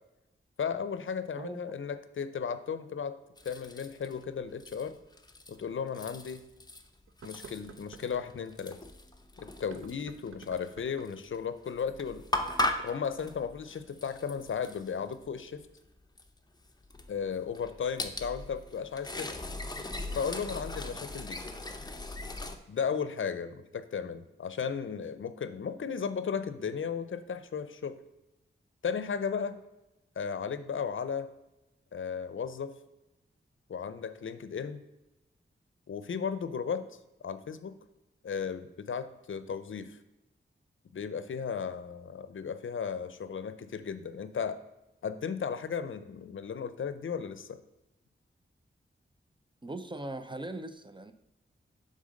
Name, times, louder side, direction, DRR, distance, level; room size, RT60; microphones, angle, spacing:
voice 1, 0.6-3.2 3.4-5.0 5.5-6.5 7.2-8.8 9.4-12.2 12.8-15.6 17.1-19.4 20.1-21.4 22.7-28.0 28.8-29.6 30.2-31.3 31.9-32.7 33.7-34.8 35.9-36.9 37.2-37.8 38.2-40.0 40.9-44.6 45.0-47.6, left 6 dB, 70° left, 12 dB, 0.5 m, -35 dB
voice 2, 1.4-1.8 49.6-51.1, right 1 dB, 25° right, 9 dB, 0.5 m, -40 dB
sound 1, 3.4-4.2 4.6-5.6 5.9-6.9 7.2-10.7 11.0-11.2 11.6-15.3 15.8-15.9 16.2-16.3 16.8-22.5, left 1 dB, 20° left, 0.6 m, -38 dB
sound 2, 5.1-5.2 5.8-5.9 7.1-8.3 9.6-11.3, right 6 dB, 80° right, 0.6 m, -51 dB
7.5 x 3.8 x 6.3 m, 0.96 s
wide cardioid pair, 110°, 21 cm